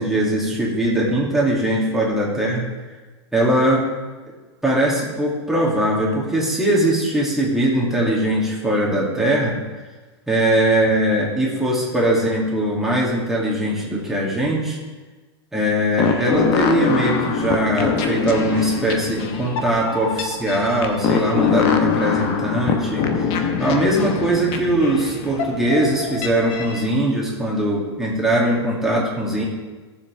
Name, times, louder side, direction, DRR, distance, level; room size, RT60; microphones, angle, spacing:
voice 1, 0.0-2.7 3.3-3.9 4.6-9.6 10.3-14.8 15.5-29.4, right 1 dB, ahead, -5 dB, 2.8 m, -21 dB
sound 1, 16.0-26.9, left 6 dB, 40° left, 1.2 m, -23 dB
16.5 x 7.4 x 3.6 m, 1.3 s
hypercardioid pair, 130°, 14 cm